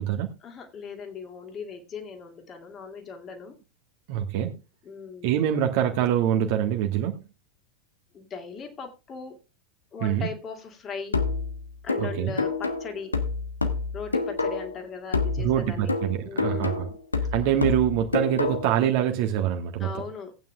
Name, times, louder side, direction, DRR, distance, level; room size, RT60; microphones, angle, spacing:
voice 1, 0.4-3.6 4.8-5.7 8.1-9.4 9.9-11.2 11.8-13.2 13.9-16.0 16.2-17.0 19.8-20.4, left 5 dB, 25° left, 4 dB, 2.4 m, -39 dB
voice 2, 4.1-4.5 5.2-7.2 10.0-10.3 12.0-12.4 15.4-16.9 17.3-19.9, right 10 dB, 45° right, 4 dB, 1.4 m, -25 dB
sound 1, 11.1-14.8 15.1-18.8, left 4 dB, 80° left, 1.2 m, -28 dB
18.0 x 9.0 x 2.4 m, 0.29 s
figure-of-eight pair, 90°, 0 cm